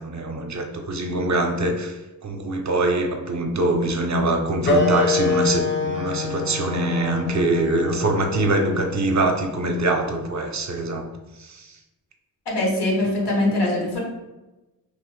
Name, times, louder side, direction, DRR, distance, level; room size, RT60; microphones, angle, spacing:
voice 1, 0.0-11.0 11.4-11.8, right 2 dB, 45° right, 4 dB, 0.5 m, -23 dB
sound 1, 4.6-9.8, left 4 dB, 30° left, 0.4 m, -26 dB
voice 2, 12.5-14.0, left 1 dB, 90° left, -2 dB, 0.9 m, -22 dB
3.2 x 2.0 x 3.0 m, 1.0 s
cardioid pair, 55°, 40 cm